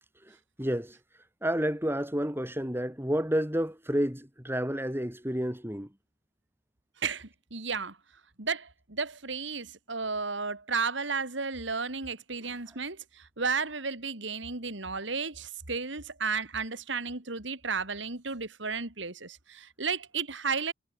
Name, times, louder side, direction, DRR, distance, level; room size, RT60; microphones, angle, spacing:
voice 1, 0.2-1.0 1.4-5.9 12.7-12.8, equal, 10° right, 4.1 m, -30 dB
voice 2, 7.0-8.0 8.4-20.7, right 5 dB, 70° right, 2.9 m, -33 dB
head